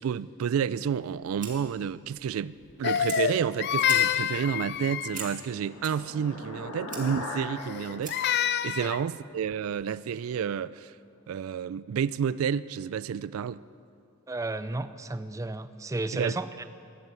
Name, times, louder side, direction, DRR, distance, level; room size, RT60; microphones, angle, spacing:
voice 1, 0.0-10.9 11.3-13.6 16.1-16.3, right 7 dB, 80° right, 0.3 m, -30 dB
Fire, 1.0-8.4, right 5 dB, 40° right, 2.1 m, -45 dB
Crying sobbing, 2.8-5.4 7.6-9.0, left 9 dB, 50° left, 0.4 m, -27 dB
sound 1, 4.8-9.3, left 2 dB, 90° left, 2.0 m, -41 dB
voice 2, 14.3-16.5, right 2 dB, 15° right, 0.4 m, -33 dB
12.0 x 11.0 x 8.2 m
head